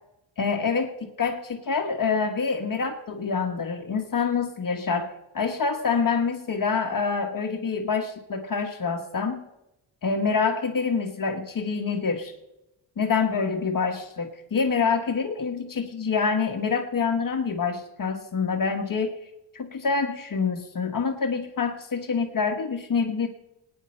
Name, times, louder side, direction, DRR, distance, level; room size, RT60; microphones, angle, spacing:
voice 1, 0.4-9.4 10.0-12.3 13.0-19.1 19.5-23.3, left 5 dB, 45° left, 5 dB, 1.3 m, -26 dB
22.5 x 9.8 x 4.4 m, 0.93 s
cardioid pair, 110°, 44 cm